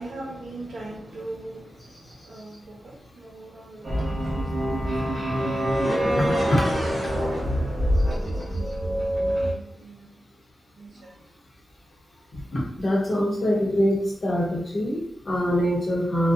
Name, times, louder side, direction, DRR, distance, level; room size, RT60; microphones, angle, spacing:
voice 1, 0.0-6.0 6.4-10.1 10.8-11.1, right 2 dB, 70° right, -3 dB, 0.8 m, -42 dB
sound 1, 3.8-9.5, equal, 25° right, 0.9 m, -25 dB
voice 2, 6.1-6.6 12.5-16.3, equal, 45° left, -4 dB, 0.9 m, -24 dB
2.5 x 2.2 x 2.5 m, 0.67 s
wide cardioid pair, 150°, 0 cm